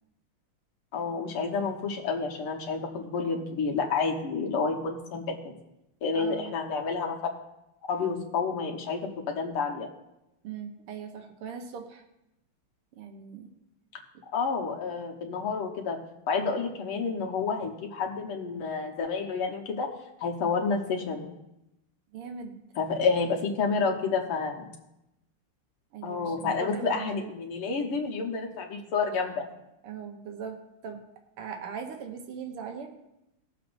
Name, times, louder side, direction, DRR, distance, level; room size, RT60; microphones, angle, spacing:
voice 1, 0.9-5.5 6.0-7.2 7.9-9.9 14.3-16.0 16.3-19.9 20.2-21.3 22.8-24.7 26.0-29.5, left 4 dB, 85° left, 1 dB, 2.2 m, -29 dB
voice 2, 6.1-6.5 10.4-12.0 12.9-13.5 22.1-22.6 25.9-27.3 29.8-30.6 30.8-31.0 31.4-32.9, right 6 dB, 90° right, 4 dB, 1.9 m, -39 dB
20.0 x 7.3 x 2.6 m, 0.89 s
omnidirectional pair, 2.4 m